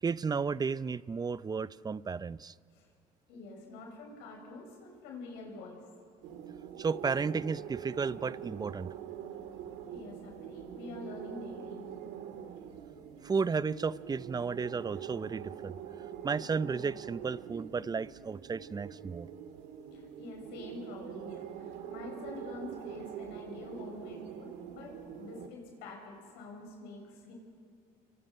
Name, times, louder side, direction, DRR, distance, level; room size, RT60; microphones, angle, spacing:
voice 1, 0.0-2.5 6.8-8.9 13.2-15.7 16.2-19.3, right 5 dB, 20° right, 18 dB, 0.6 m, -33 dB
voice 2, 3.3-5.8 9.9-11.9 19.9-27.3, left 2 dB, 80° left, 0 dB, 7.0 m, -46 dB
sound 1, 6.2-25.5, right 9 dB, 80° right, 1.9 m, -44 dB
29.5 x 25.0 x 5.6 m, 2.2 s
supercardioid pair, 85°, 17 cm